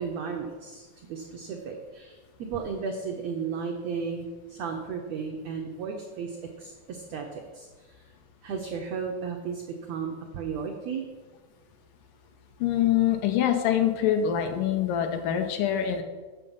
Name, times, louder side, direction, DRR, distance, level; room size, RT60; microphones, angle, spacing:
voice 1, 0.0-7.9 8.4-11.1, right 6 dB, 85° right, 2 dB, 1.5 m, -34 dB
voice 2, 12.6-16.0, left 10 dB, 80° left, 6 dB, 2.2 m, -24 dB
8.5 x 6.8 x 5.5 m, 1.3 s
omnidirectional pair, 4.0 m